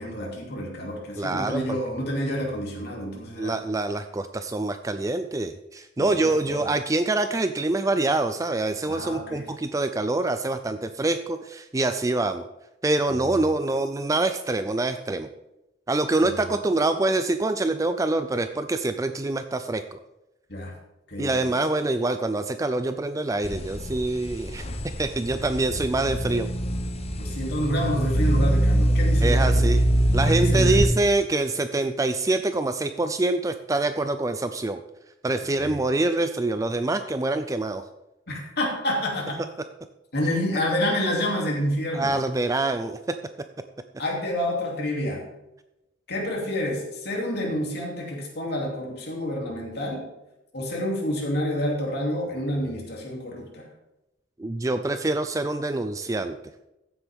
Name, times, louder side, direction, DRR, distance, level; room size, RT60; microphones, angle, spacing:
voice 1, 0.0-3.6 6.0-6.7 8.9-9.4 13.1-13.4 16.2-16.4 20.5-20.8 21.1-21.5 27.2-29.8 30.3-30.9 35.6-35.8 38.3-39.4 40.1-42.1 44.0-45.2 46.1-50.0 50.5-53.7, left 1 dB, 60° left, -1 dB, 2.9 m, -29 dB
voice 2, 1.2-1.8 3.4-12.4 12.8-15.3 15.9-20.0 21.2-24.6 25.0-26.5 29.2-29.8 30.1-34.8 35.2-37.8 41.9-43.0 54.4-56.4, right 2 dB, 15° right, 9 dB, 0.4 m, -25 dB
sound 1, 23.4-30.9, right 1 dB, 35° left, 0.9 m, -23 dB
15.0 x 8.0 x 3.6 m, 0.93 s
head